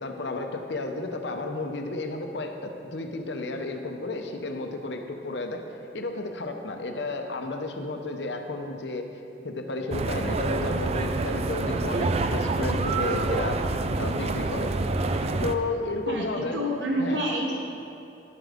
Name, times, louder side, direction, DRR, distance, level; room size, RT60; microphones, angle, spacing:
voice 1, 0.0-5.6 5.9-9.1 9.4-13.6 14.0-14.7 15.4-16.6 17.0-17.2, left 2 dB, 80° left, 4 dB, 0.8 m, -32 dB
sound 1, 9.9-15.5, right 3 dB, 35° right, 0.4 m, -27 dB
voice 2, 16.1-17.5, equal, 80° right, -1 dB, 0.9 m, -28 dB
11.0 x 7.4 x 3.5 m, 2.7 s
head